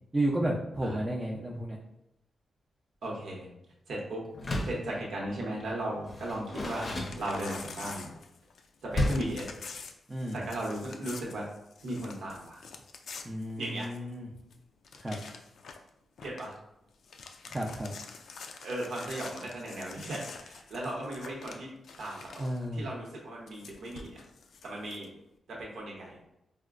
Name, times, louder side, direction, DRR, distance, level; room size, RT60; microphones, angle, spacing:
voice 1, 0.1-1.8 10.1-10.4 13.2-14.3 15.0-15.2 17.5-17.9 22.4-22.9, right 1 dB, 20° right, -4 dB, 0.5 m, -32 dB
voice 2, 3.0-3.5 3.9-4.2 4.6-8.1 8.8-9.5 10.3-11.5 11.8-12.6 13.6-13.9 16.2-16.6 18.6-21.7 22.0-24.2 24.6-25.1 25.5-26.2, right 1 dB, 80° right, -3 dB, 0.9 m, -36 dB
Door, 4.3-4.9 6.0-7.7 8.9-9.4, left 1 dB, 35° left, 0.6 m, -32 dB
Crumpling crinkling / Tearing, 6.7-8.8 9.0-14.1 14.5-14.6 14.8-15.9 16.2-16.5 16.9-22.7 23.5-25.1, left 5 dB, 75° left, 0.3 m, -47 dB
4.2 x 2.1 x 2.4 m, 0.86 s
cardioid pair, 100°, 0 cm